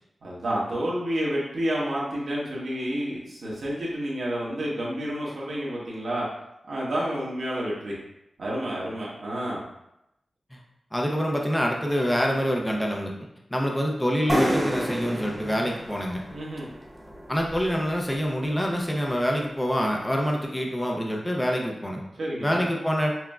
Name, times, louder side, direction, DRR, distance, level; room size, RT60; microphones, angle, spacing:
voice 1, 0.2-6.2 6.7-7.9 8.4-9.6 16.3-16.7 22.1-22.6, equal, 75° right, -5 dB, 1.1 m, -29 dB
voice 2, 10.9-13.1 13.5-16.2 17.3-22.0 22.4-23.1, equal, 10° left, 0 dB, 0.5 m, -26 dB
sound 1, 14.3-17.9, equal, 15° right, 0.9 m, -30 dB
5.7 x 2.1 x 2.3 m, 0.86 s
wide cardioid pair, 75°, 0 cm